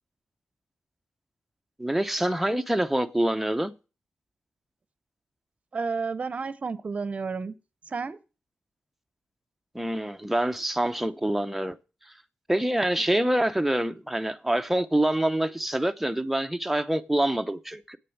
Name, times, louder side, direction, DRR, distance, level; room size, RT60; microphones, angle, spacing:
voice 1, 1.8-3.7 9.7-11.8 12.5-18.0, right 1 dB, 5° right, 0.6 m, -26 dB
voice 2, 5.7-7.5 7.9-8.2, right 4 dB, 35° right, 0.7 m, -31 dB
8.7 x 6.7 x 7.0 m
wide cardioid pair, 140°, 4 cm